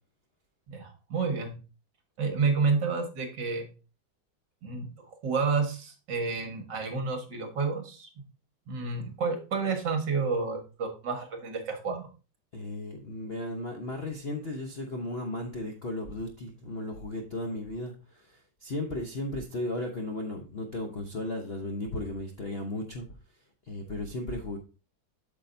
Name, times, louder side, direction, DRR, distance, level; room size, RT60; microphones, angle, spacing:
voice 1, 0.7-1.5 2.2-3.7 4.6-4.9 5.2-8.1 8.7-12.1, right 4 dB, 60° right, 4 dB, 2.1 m, -30 dB
voice 2, 12.5-23.1 23.6-24.6, left 1 dB, 45° left, 2 dB, 0.8 m, -35 dB
8.4 x 6.9 x 2.6 m, 0.32 s
omnidirectional pair, 2.2 m